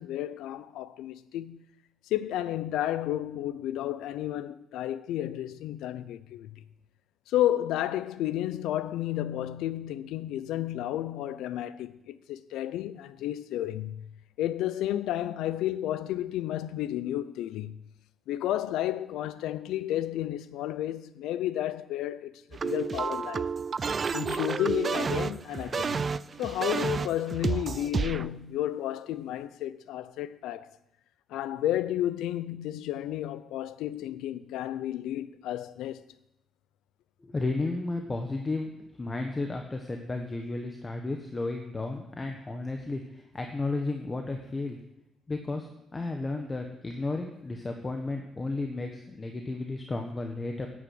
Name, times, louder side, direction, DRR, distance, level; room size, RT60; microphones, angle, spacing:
voice 1, 0.0-1.6 2.1-6.6 7.3-17.9 18.3-23.5 24.1-26.1 26.4-30.7 31.3-36.0, left 12 dB, 90° left, 0.6 m, -32 dB
sound 1, 22.5-28.3, right 5 dB, 40° right, 0.4 m, -30 dB
voice 2, 37.2-38.7 39.0-44.8 45.3-45.7 45.9-50.7, left 2 dB, 25° left, 1.4 m, -33 dB
10.5 x 8.8 x 7.9 m
cardioid pair, 90°, 0 cm